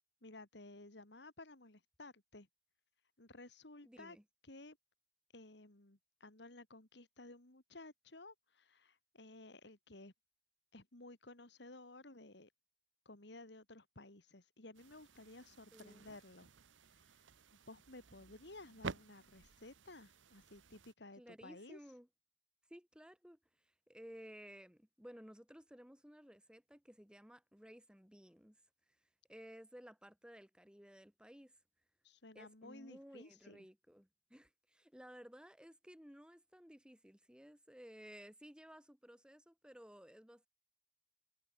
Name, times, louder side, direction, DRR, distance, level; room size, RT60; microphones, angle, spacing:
voice 1, 0.2-2.5 3.2-4.2 4.4-4.8 5.3-10.1 10.7-12.5 13.1-16.5 17.1-17.2 17.7-21.8 32.0-33.6, left 2 dB, 60° left, 2.5 m, -55 dB
voice 2, 3.8-4.2 15.7-16.2 21.2-22.1 22.7-28.6 29.3-31.5 32.3-40.5, equal, 5° right, 2.8 m, -57 dB
sound 1, 14.7-20.9, right 4 dB, 85° right, 1.1 m, -52 dB
head